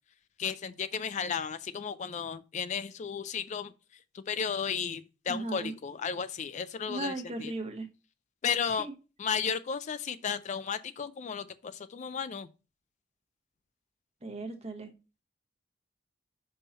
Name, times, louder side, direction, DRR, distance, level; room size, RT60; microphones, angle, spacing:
voice 1, 0.4-7.5 8.4-8.9 9.2-12.5, left 7 dB, 40° left, 0.3 m, -34 dB
voice 2, 5.3-5.7 6.9-7.9 8.8-8.9 14.2-14.9, right 2 dB, 35° right, 1.1 m, -37 dB
5.5 x 5.4 x 4.0 m
head